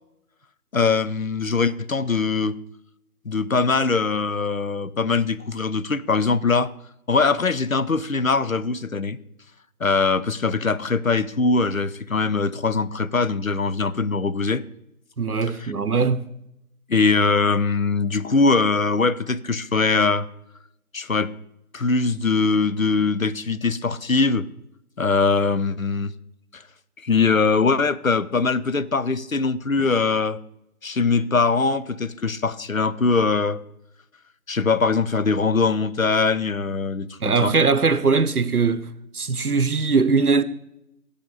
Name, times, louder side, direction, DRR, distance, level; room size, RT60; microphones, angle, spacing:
voice 1, 0.7-2.6 3.3-6.7 7.1-9.2 9.8-14.6 16.9-20.3 20.9-21.3 21.7-24.5 25.0-26.1 26.5-26.6 27.0-30.4 30.8-33.6 34.5-37.5, left 4 dB, 65° left, 0.7 m, -22 dB
voice 2, 15.2-16.3 29.8-29.9 37.2-38.8 39.1-40.4, right 4 dB, 75° right, 1.0 m, -20 dB
15.5 x 8.4 x 4.0 m
figure-of-eight pair, 180°, 45 cm